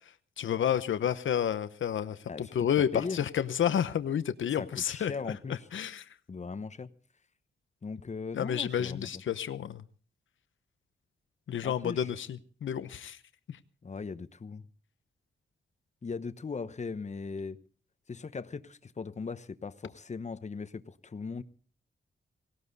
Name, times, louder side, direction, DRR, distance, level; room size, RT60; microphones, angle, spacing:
voice 1, 0.4-5.1 5.7-6.0 8.3-9.8 11.5-12.3 12.6-13.2, left 9 dB, 75° left, 13 dB, 0.8 m, -30 dB
voice 2, 2.3-3.3 4.6-5.7 6.3-6.9 7.8-9.1 11.6-12.1 13.8-14.7 16.0-17.6 18.1-21.4, left 4 dB, 35° left, 13 dB, 1.0 m, -39 dB
18.0 x 17.5 x 4.1 m, 0.40 s
cardioid pair, 90°, 20 cm